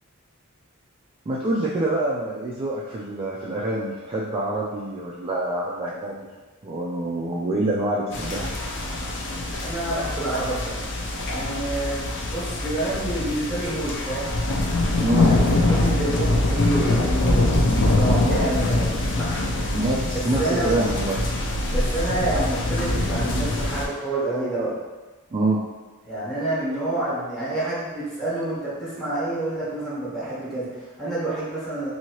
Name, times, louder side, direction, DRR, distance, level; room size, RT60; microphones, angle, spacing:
voice 1, 1.3-6.3 6.6-8.5 15.0-15.3 19.7-21.2 25.3-25.6, right 1 dB, 25° right, -6 dB, 0.3 m, -26 dB
sound 1, 8.1-23.9, left 2 dB, 60° left, 0.4 m, -24 dB
voice 2, 9.6-10.8 11.2-14.3 15.2-19.5 20.1-20.8 21.7-24.7 26.0-31.9, right 1 dB, ahead, -10 dB, 1.2 m, -28 dB
2.9 x 2.7 x 2.9 m, 1.2 s
head